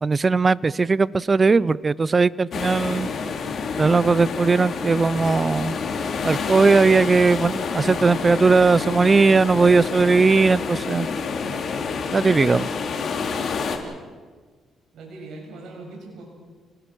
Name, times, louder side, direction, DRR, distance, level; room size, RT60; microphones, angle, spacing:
voice 1, 0.0-3.1 3.8-5.8 6.2-11.1 12.1-12.7, right 4 dB, 30° right, 20 dB, 0.6 m, -18 dB
sound 1, 2.5-13.8, left 5 dB, 55° left, 3.4 m, -28 dB
voice 2, 11.3-11.7 14.9-16.2, right 3 dB, 75° right, 0 dB, 7.1 m, -40 dB
29.5 x 20.0 x 6.3 m, 1.5 s
cardioid pair, 90°, 0 cm